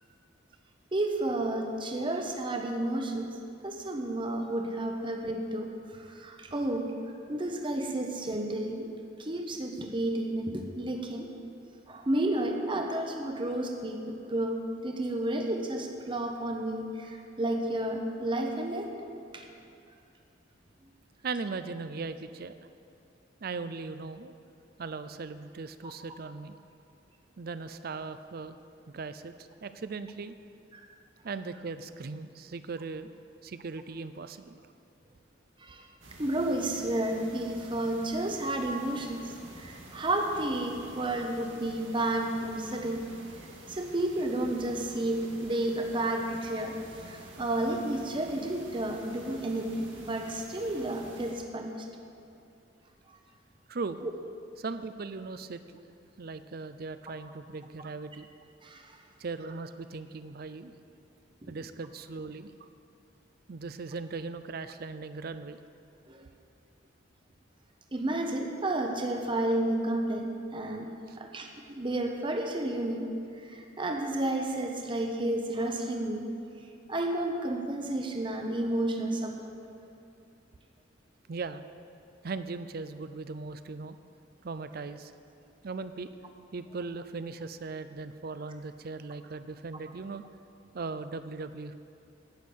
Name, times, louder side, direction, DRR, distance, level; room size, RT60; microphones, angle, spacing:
voice 1, 0.9-3.3 3.6-6.9 7.3-8.9 9.2-11.3 11.9-18.9 19.3-19.4 35.6-35.8 36.2-43.1 43.7-46.8 47.1-49.7 50.0-51.7 53.1-53.2 54.0-54.1 58.6-58.9 61.4-61.6 66.1-66.2 67.9-73.1 73.4-76.3 76.9-79.4, right 1 dB, 25° right, 3 dB, 0.9 m, -31 dB
voice 2, 21.2-22.7 23.4-24.3 24.8-26.6 27.4-28.6 28.9-30.4 31.2-33.1 33.4-34.6 53.7-54.0 54.6-55.6 56.2-58.3 59.2-60.7 61.5-62.7 63.5-65.6 71.1-71.2 81.3-81.6 82.2-84.0 84.4-85.1 85.6-86.1 86.5-90.2 90.7-91.7, right 4 dB, 50° right, 11 dB, 0.5 m, -38 dB
sound 1, 36.0-51.3, right 1 dB, 90° right, 2.0 m, -49 dB
11.5 x 6.5 x 8.5 m, 2.6 s
head